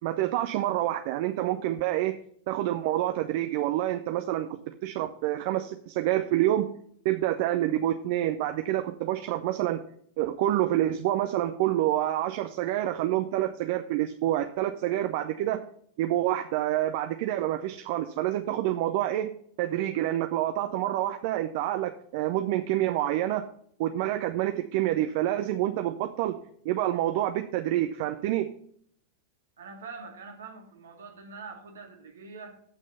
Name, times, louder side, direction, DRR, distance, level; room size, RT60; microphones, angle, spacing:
voice 1, 0.0-2.2 2.5-6.7 7.0-9.8 10.2-15.6 16.0-19.3 19.6-23.4 23.8-26.3 26.6-28.5, right 13 dB, 50° right, 7 dB, 0.5 m, -27 dB
voice 2, 29.6-32.6, right 4 dB, 65° right, 4 dB, 1.9 m, -44 dB
8.0 x 6.2 x 5.6 m, 0.64 s
figure-of-eight pair, 90°, 0 cm